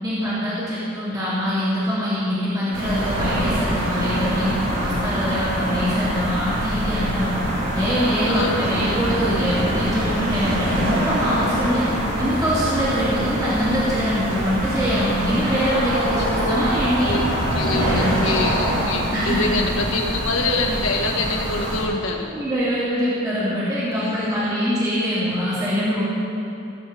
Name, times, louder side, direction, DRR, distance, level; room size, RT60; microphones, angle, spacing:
voice 1, 0.0-7.3 7.7-11.9 12.2-17.1 17.6-18.4 19.1-19.5 22.3-26.0, equal, 20° right, -11 dB, 2.9 m, -23 dB
sound 1, 2.7-21.8, right 1 dB, 80° right, 2.7 m, -24 dB
voice 2, 16.0-16.5 17.0-17.3 17.5-22.3 23.9-24.3, left 2 dB, 90° left, 1 dB, 1.6 m, -25 dB
18.5 x 8.1 x 3.9 m, 2.8 s
head